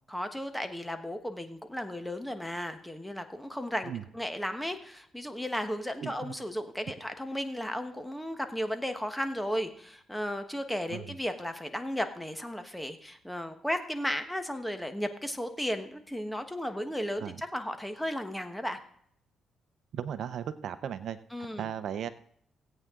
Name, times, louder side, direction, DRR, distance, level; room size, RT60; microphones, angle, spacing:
voice 1, 0.1-18.8 21.3-21.7, equal, 5° left, 7 dB, 1.3 m, -34 dB
voice 2, 6.0-6.3 10.9-11.1 17.2-17.4 19.9-21.2 21.6-22.1, right 9 dB, 65° right, 12 dB, 0.7 m, -36 dB
17.0 x 8.7 x 3.7 m, 0.65 s
cardioid pair, 90°, 0 cm